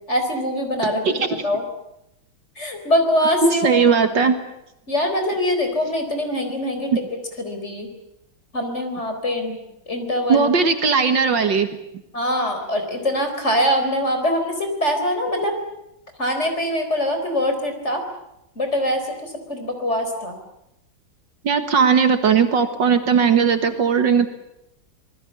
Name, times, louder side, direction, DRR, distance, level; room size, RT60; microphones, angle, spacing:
voice 1, 0.1-1.0 1.3-1.6 2.6-3.8 4.9-6.9 7.4-7.9 8.5-10.5 12.1-15.6 16.2-18.0 18.6-20.4, equal, 30° left, 5 dB, 4.4 m, -23 dB
voice 2, 3.4-4.4 6.9-7.0 10.3-11.7 21.4-24.3, right 6 dB, 65° right, 8 dB, 2.2 m, -18 dB
26.5 x 20.0 x 8.4 m, 0.83 s
omnidirectional pair, 2.2 m